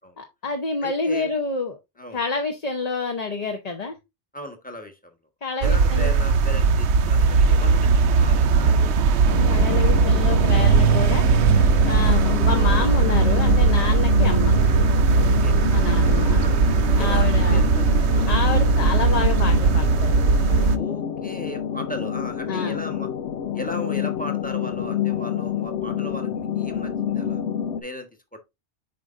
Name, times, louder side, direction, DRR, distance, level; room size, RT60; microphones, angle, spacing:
voice 1, 0.2-1.8 2.1-3.9 5.4-6.1 9.5-11.3 11.8-14.5 15.7-16.4 17.0-17.6 18.3-20.1 22.5-22.7, left 4 dB, 40° left, 0.8 m, -28 dB
voice 2, 0.8-1.3 2.0-2.2 4.3-5.1 5.6-9.3 15.2-18.7 20.7-23.1 23.5-27.4 27.8-28.4, left 1 dB, 10° left, 1.1 m, -37 dB
sound 1, 5.6-20.8, right 4 dB, 75° right, 0.9 m, -18 dB
sound 2, 9.3-27.8, left 8 dB, 90° left, 0.9 m, -28 dB
7.9 x 5.0 x 2.5 m
omnidirectional pair, 1.2 m